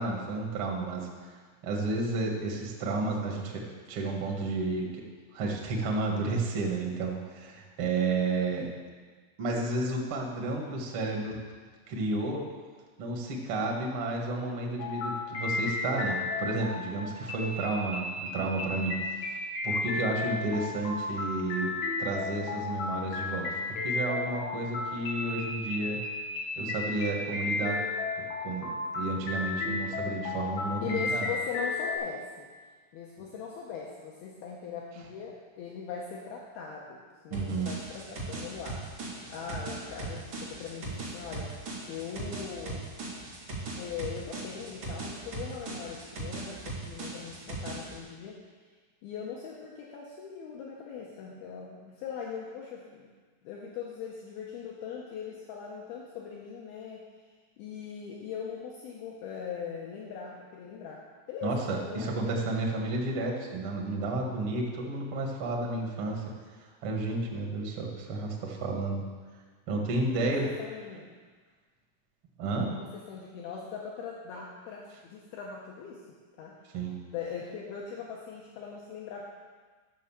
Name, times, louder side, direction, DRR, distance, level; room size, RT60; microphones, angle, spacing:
voice 1, 0.0-3.6 3.9-5.0 5.3-8.7 9.4-11.4 11.9-12.4 13.0-19.4 19.6-21.7 22.0-26.0 26.6-27.8 28.2-31.3 37.3-37.7 61.4-66.2 66.8-69.0 69.7-70.5 72.4-72.7 76.7-76.9, right 2 dB, 85° right, -1 dB, 1.2 m, -31 dB
sound 1, 14.8-32.0, left 3 dB, 60° left, 3.4 m, -34 dB
voice 2, 30.8-32.5 32.9-41.6 41.9-42.9 43.8-48.4 49.0-53.1 53.4-57.0 57.6-61.0 61.3-62.4 70.1-71.2 72.6-76.0 76.4-76.5 77.1-79.2, left 7 dB, 75° left, -3 dB, 2.3 m, -40 dB
sound 2, 37.3-48.0, right 3 dB, 40° right, 3.3 m, -39 dB
12.5 x 6.5 x 7.4 m, 1.5 s
omnidirectional pair, 5.8 m